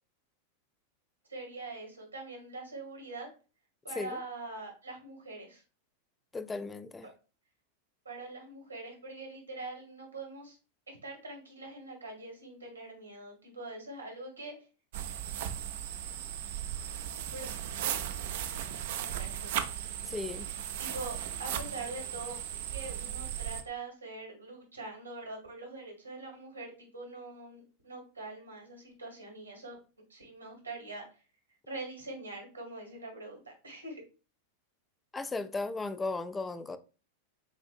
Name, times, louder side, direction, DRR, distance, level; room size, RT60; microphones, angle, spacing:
voice 1, 1.3-3.3 3.8-5.6 7.0-7.1 8.0-10.6 10.9-14.5 17.2-17.5 19.0-19.7 20.8-22.4 22.7-29.7 30.1-31.2 31.7-34.0, right 2 dB, 80° right, 1.6 m, -43 dB
voice 2, 6.3-7.1 20.0-20.5 35.1-36.8, left 3 dB, 15° left, 0.4 m, -36 dB
sound 1, 14.9-23.6, right 10 dB, 55° right, 0.5 m, -37 dB
7.2 x 2.6 x 2.4 m
figure-of-eight pair, 90°, 0 cm